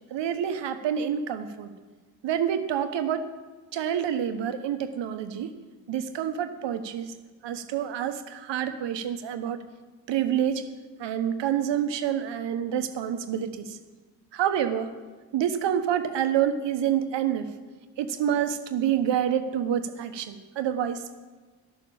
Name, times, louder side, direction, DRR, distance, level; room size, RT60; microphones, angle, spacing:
voice 1, 0.1-1.7 2.2-3.3 3.7-5.5 5.9-7.1 7.4-9.6 10.1-10.7 11.0-13.7 14.3-14.9 15.3-17.5 18.0-21.2, right 9 dB, 70° right, 9 dB, 1.1 m, -27 dB
12.5 x 6.9 x 8.6 m, 1.4 s
hypercardioid pair, 45°, 45 cm